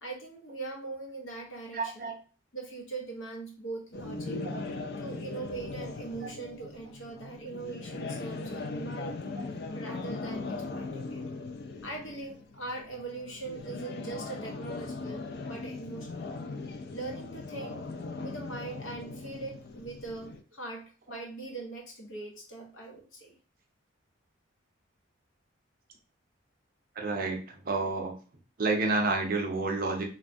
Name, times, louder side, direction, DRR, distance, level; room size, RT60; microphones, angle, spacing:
voice 1, 0.0-2.1 2.5-4.4 5.0-9.4 9.7-11.2 11.8-16.3 16.9-17.8 18.2-23.4, right 3 dB, 80° left, 1 dB, 0.9 m, -41 dB
voice 2, 1.7-2.2 4.5-4.6 27.0-28.2 28.6-30.0, right 3 dB, 45° right, 2 dB, 0.5 m, -29 dB
sound 1, 3.9-20.4, left 3 dB, 50° left, 0.3 m, -39 dB
3.3 x 2.3 x 2.5 m, 0.36 s
head